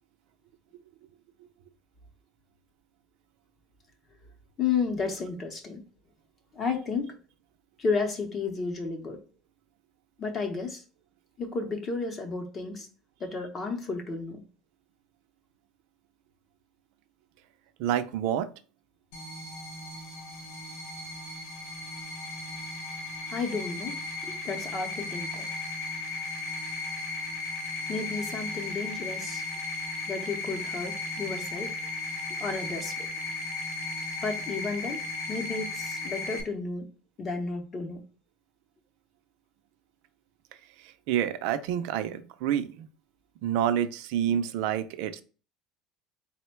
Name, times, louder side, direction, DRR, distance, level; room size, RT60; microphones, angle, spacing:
voice 1, 4.6-5.8 6.5-7.2 7.8-9.2 10.2-10.8 11.4-12.9 13.2-14.4 23.3-23.9 24.2-25.5 27.9-29.4 30.1-31.8 32.4-33.1 34.2-35.0 35.3-36.9 37.2-38.0, left 4 dB, 20° left, 5 dB, 0.7 m, -32 dB
voice 2, 17.8-18.5 40.8-42.9 43.4-45.2, right 10 dB, 60° right, 10 dB, 0.4 m, -28 dB
sound 1, 19.1-36.4, left 2 dB, 75° left, 1.0 m, -36 dB
4.2 x 2.1 x 4.3 m, 0.36 s
cardioid pair, 180°, 0 cm